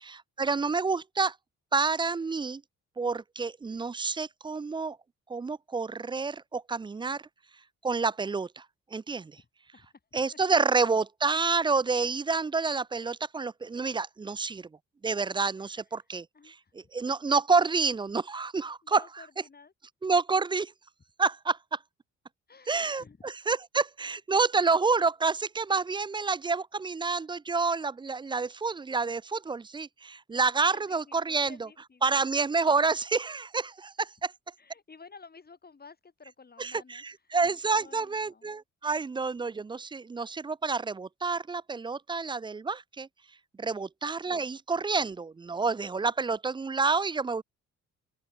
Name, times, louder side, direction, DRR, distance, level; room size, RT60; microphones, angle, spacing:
voice 1, 0.0-1.3 1.7-2.6 3.0-5.0 5.3-7.2 7.8-8.6 8.9-9.4 10.1-14.7 15.0-19.0 20.0-20.7 21.2-21.8 22.7-31.7 32.0-34.3 36.6-43.1 43.6-47.4, right 4 dB, 15° right, 0.4 m, -28 dB
voice 2, 9.4-10.2 15.6-16.7 18.8-19.7 22.5-23.3 30.7-32.2 34.6-37.4 37.7-38.5 43.7-43.9, left 4 dB, 30° left, 5.7 m, -54 dB
open air
cardioid pair, 90°, 30 cm